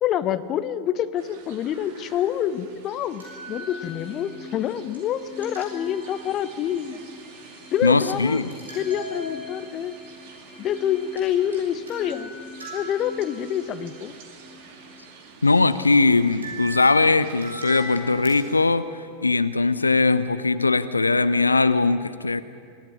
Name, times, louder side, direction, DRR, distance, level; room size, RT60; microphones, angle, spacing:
voice 1, 0.0-7.0 7.7-8.4 8.7-10.0 10.6-12.3 12.7-14.1, left 10 dB, 35° left, 14 dB, 0.9 m, -27 dB
sound 1, 1.2-18.5, right 5 dB, 50° right, 3.3 m, -48 dB
sound 2, 2.9-16.3, left 2 dB, 10° left, 3.8 m, -46 dB
sound 3, 3.2-4.5 4.9-5.0 5.4-6.6 8.5-9.8 11.2-11.3 11.5-13.6 15.9-16.0 16.4-18.8, right 1 dB, 70° right, 6.9 m, -39 dB
voice 2, 7.8-8.5 15.4-18.9 19.2-22.4, left 3 dB, 80° left, 13 dB, 0.7 m, -20 dB
24.0 x 16.5 x 9.7 m, 2.3 s
figure-of-eight pair, 90°, 0 cm